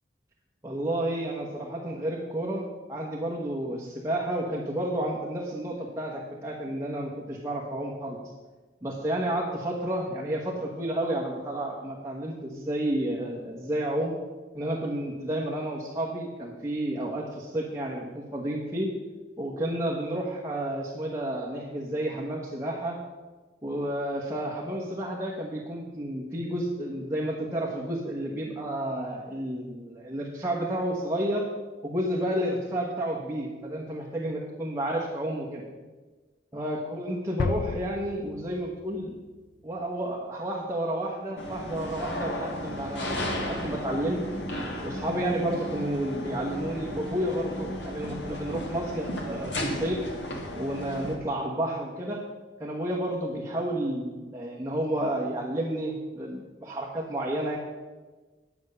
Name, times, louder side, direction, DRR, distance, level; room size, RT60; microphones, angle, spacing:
voice 1, 0.6-8.2 8.8-14.1 14.5-18.9 19.4-23.0 23.6-31.5 31.8-35.6 36.5-39.1 39.6-44.2 44.8-50.0 50.5-52.2 52.6-57.6, right 1 dB, 15° right, -4 dB, 1.3 m, -31 dB
sound 1, 37.4-39.3, left 4 dB, 45° left, 0.3 m, -33 dB
sound 2, 41.4-51.2, left 1 dB, 90° left, 2.1 m, -34 dB
10.5 x 7.1 x 6.7 m, 1.3 s
head